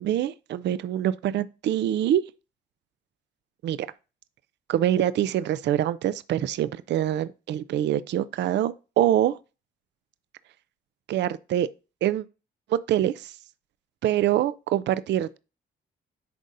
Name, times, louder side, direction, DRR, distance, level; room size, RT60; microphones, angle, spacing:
voice 1, 0.0-2.2 3.6-3.9 4.7-9.4 11.1-11.7 12.0-12.2 12.7-13.3 14.0-15.4, right 11 dB, 65° right, 0.4 m, -25 dB
10.0 x 4.0 x 2.5 m
cardioid pair, 90°, 20 cm